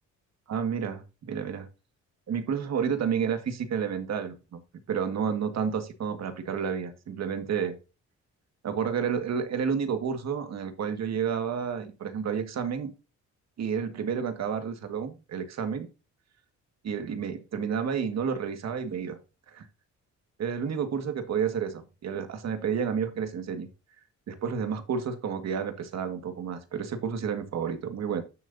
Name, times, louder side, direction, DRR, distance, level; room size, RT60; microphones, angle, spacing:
voice 1, 0.5-1.7 2.3-4.6 4.9-7.8 8.6-12.9 13.6-15.9 16.8-19.2 19.5-19.6 20.4-23.7 24.3-28.2, right 7 dB, 60° right, 8 dB, 1.9 m, -30 dB
10.5 x 6.7 x 2.7 m, 0.30 s
cardioid pair, 90°, 30 cm